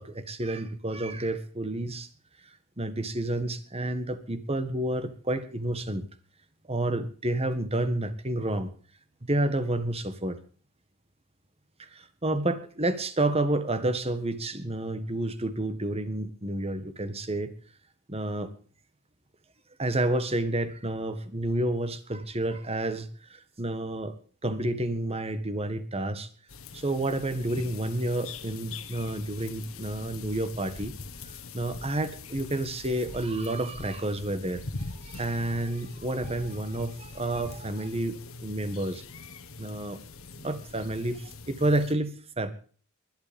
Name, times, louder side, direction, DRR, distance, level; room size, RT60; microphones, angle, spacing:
voice 1, 0.0-2.1 2.8-6.0 6.7-8.7 9.2-10.4 11.8-17.5 18.1-18.5 19.8-24.1 24.4-26.3 26.7-30.9 31.5-34.6 34.9-39.0 39.6-40.0 40.4-42.5, right 1 dB, 25° right, 11 dB, 1.6 m, -30 dB
sound 1, 26.5-41.9, left 3 dB, 70° left, 1.6 m, -43 dB
20.5 x 11.5 x 5.3 m, 0.43 s
head